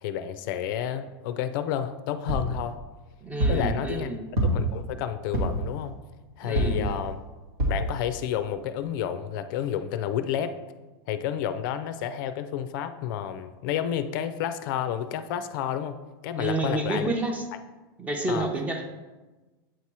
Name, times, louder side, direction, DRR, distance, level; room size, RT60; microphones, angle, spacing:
voice 1, 0.0-2.8 3.5-4.1 4.4-6.0 6.4-7.2 7.7-10.5 11.1-16.0 16.2-17.1 18.3-18.5, left 9 dB, 55° left, 10 dB, 0.4 m, -30 dB
sound 1, 2.3-2.6 3.4-3.7 4.4-4.8 5.3-5.7 6.6-6.9 7.6-7.9 8.5-8.6 8.8-8.9, right 1 dB, 90° right, 1.6 m, -25 dB
voice 2, 3.2-4.2 6.4-7.0 16.4-17.5 18.0-18.8, right 2 dB, 10° right, 4 dB, 0.6 m, -29 dB
7.7 x 2.9 x 4.7 m, 1.2 s
supercardioid pair, 145°, 13 cm